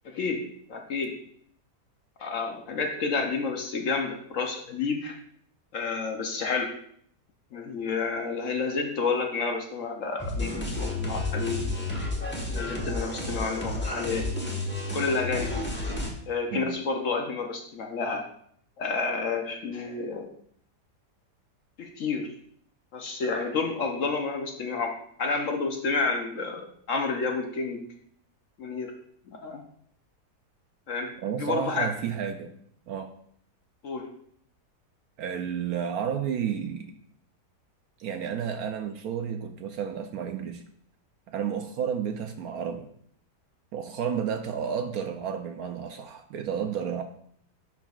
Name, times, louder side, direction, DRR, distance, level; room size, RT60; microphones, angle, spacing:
voice 1, 0.0-1.2 2.2-5.2 5.7-6.8 7.5-11.7 12.5-14.3 14.9-15.6 16.3-18.2 18.8-20.3 21.8-22.3 22.9-24.9 25.2-27.9 28.6-29.0 29.3-29.6 30.9-31.1 31.4-31.9 33.8-34.1, left 4 dB, 60° left, 3 dB, 0.9 m, -30 dB
sound 1, 10.2-16.1, left 2 dB, 10° left, 0.9 m, -31 dB
voice 2, 31.2-32.5 32.9-33.1 35.2-36.9 38.0-40.6 41.3-42.9 43.7-47.0, right 8 dB, 70° right, 7 dB, 0.9 m, -31 dB
10.5 x 4.8 x 2.4 m, 0.64 s
omnidirectional pair, 1.8 m